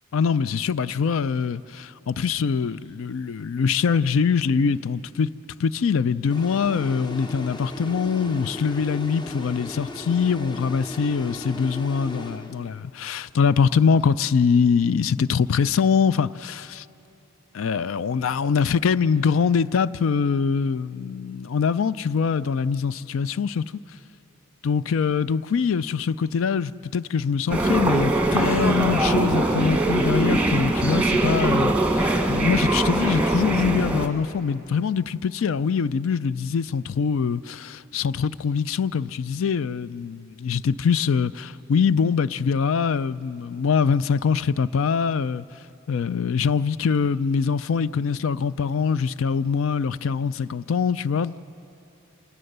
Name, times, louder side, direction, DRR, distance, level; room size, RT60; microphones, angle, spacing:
voice 1, 0.1-5.3 5.6-16.9 17.5-23.6 24.6-45.4 45.9-51.3, left 6 dB, 70° left, 0.4 m, -23 dB
sound 1, 6.3-13.0, left 1 dB, 20° left, 0.7 m, -37 dB
sound 2, 27.5-34.1, right 2 dB, 5° right, 1.2 m, -22 dB
27.0 x 19.0 x 6.7 m
head